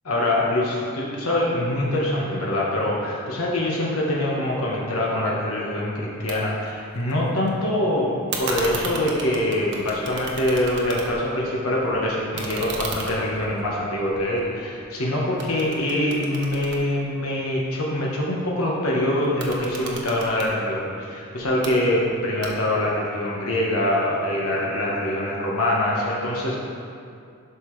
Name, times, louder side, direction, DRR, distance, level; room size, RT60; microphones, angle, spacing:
voice 1, 0.0-26.6, left 1 dB, 80° left, -4 dB, 1.3 m, -24 dB
sound 1, 6.3-6.4 6.7-7.5 8.3-11.4 11.7-15.0 15.4-17.6 19.2-20.5 21.4-21.7 22.4-22.9, right 3 dB, 55° right, 1.0 m, -34 dB
11.0 x 5.8 x 3.3 m, 2.4 s
head